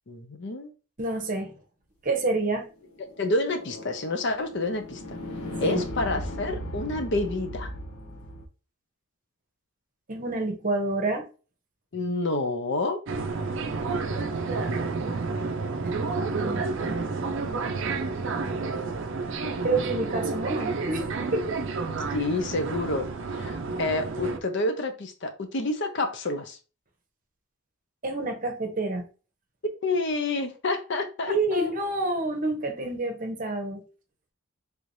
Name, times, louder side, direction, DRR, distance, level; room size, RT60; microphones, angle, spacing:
voice 1, 0.1-0.7 3.2-5.2 5.6-7.7 11.9-13.0 22.1-26.6 29.8-31.7, left 2 dB, 55° left, 0.6 m, -29 dB
voice 2, 1.0-1.5 2.0-2.7 5.6-5.8 10.1-11.2 16.2-16.7 19.6-21.6 22.1-22.2 28.0-29.1 31.3-33.8, right 2 dB, 40° right, 0.8 m, -28 dB
sound 1, 2.9-8.4, equal, 85° left, 0.8 m, -37 dB
sound 2, 13.1-24.4, right 4 dB, 60° right, 0.4 m, -30 dB
3.4 x 3.2 x 2.6 m
head